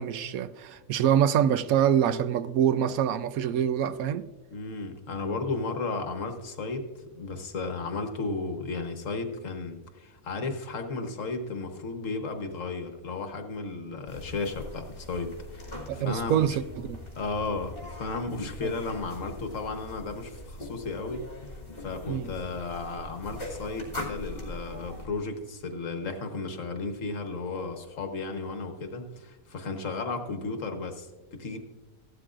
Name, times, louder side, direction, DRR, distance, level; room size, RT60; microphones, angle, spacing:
voice 1, 0.0-4.3 15.9-17.0 18.6-18.7 22.1-22.3, right 9 dB, 80° right, 1.0 m, -25 dB
voice 2, 4.5-6.9 7.1-16.5 17.2-31.6, left 3 dB, 65° left, 1.4 m, -34 dB
sound 1, 14.1-25.1, left 1 dB, 40° left, 2.5 m, -41 dB
16.0 x 12.0 x 2.5 m
omnidirectional pair, 1.5 m